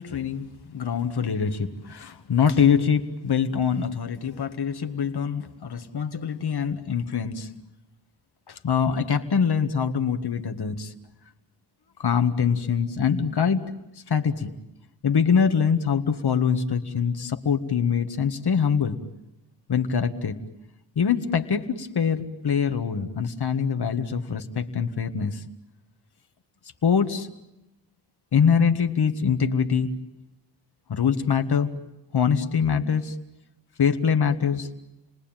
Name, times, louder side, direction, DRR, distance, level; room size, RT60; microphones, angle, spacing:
voice 1, 0.0-7.5 8.5-10.9 12.0-13.6 14.1-14.5 15.0-19.0 19.7-20.4 21.0-25.4 26.8-27.3 28.3-29.9 30.9-31.7 32.1-33.1 33.8-34.7, left 6 dB, 60° left, 7 dB, 1.9 m, -24 dB
29.5 x 20.0 x 9.1 m, 0.90 s
cardioid pair, 75°, 44 cm